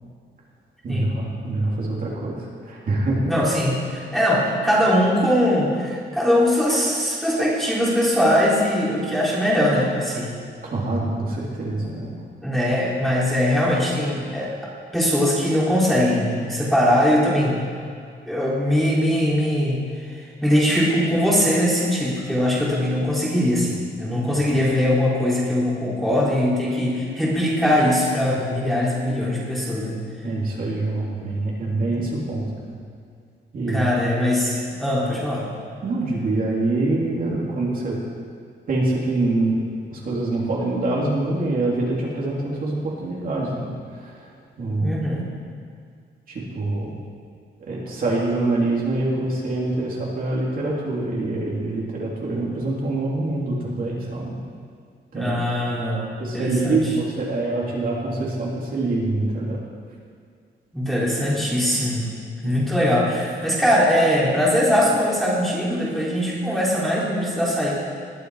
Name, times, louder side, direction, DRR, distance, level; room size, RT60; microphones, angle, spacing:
voice 1, 0.8-3.2 10.6-12.1 24.1-24.2 30.2-32.8 33.5-33.9 35.8-38.0 38.7-39.6 39.9-44.3 44.6-44.9 46.3-46.9 47.7-54.4 55.1-55.4 55.7-55.8 56.2-59.6 62.4-62.6, right 2 dB, 50° right, -4 dB, 3.1 m, -25 dB
voice 2, 3.3-10.3 11.8-11.9 12.4-14.6 14.9-17.6 18.3-19.8 20.2-30.0 31.9-32.1 33.7-35.5 44.7-45.3 55.1-56.8 60.7-62.1 62.4-67.7, equal, ahead, -6 dB, 3.5 m, -21 dB
20.5 x 11.5 x 4.9 m, 2.2 s
wide cardioid pair, 160°, 19 cm